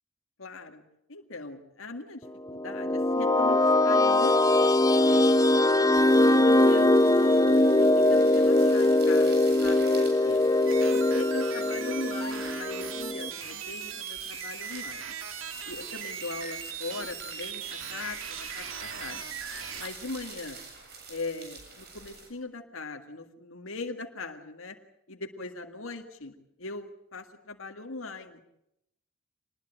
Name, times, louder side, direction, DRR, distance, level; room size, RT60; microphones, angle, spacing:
voice 1, 0.4-0.8 1.1-5.6 6.2-10.4 10.9-15.1 15.6-19.2 19.8-20.6 21.1-24.8 25.1-28.4, left 3 dB, 90° left, 5 dB, 2.0 m, -40 dB
sound 1, 2.5-13.3, left 2 dB, 15° left, 0.9 m, -22 dB
sound 2, 5.9-22.3, right 4 dB, 55° right, 7.7 m, -46 dB
sound 3, 10.7-19.9, right 7 dB, 80° right, 2.3 m, -39 dB
26.0 x 20.5 x 8.9 m, 0.81 s
head